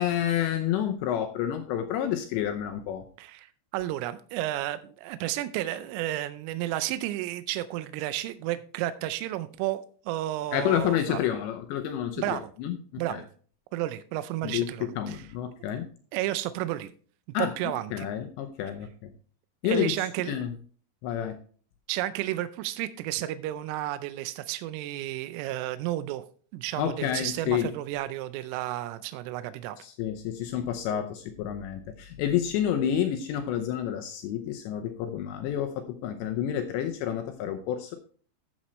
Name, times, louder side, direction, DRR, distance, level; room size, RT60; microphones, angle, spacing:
voice 1, 0.0-3.0 10.5-13.2 14.4-14.7 15.0-15.9 17.3-17.5 17.9-19.1 19.6-20.5 21.0-21.4 26.8-27.7 29.8-38.0, left 10 dB, 85° left, 6 dB, 2.5 m, -29 dB
voice 2, 3.2-11.2 12.2-12.5 13.0-13.3 13.7-15.3 16.1-16.9 17.4-18.1 19.6-20.4 21.9-26.2 26.5-29.8, right 14 dB, 85° right, 12 dB, 3.0 m, -32 dB
12.5 x 7.5 x 3.1 m, 0.44 s
omnidirectional pair, 6.0 m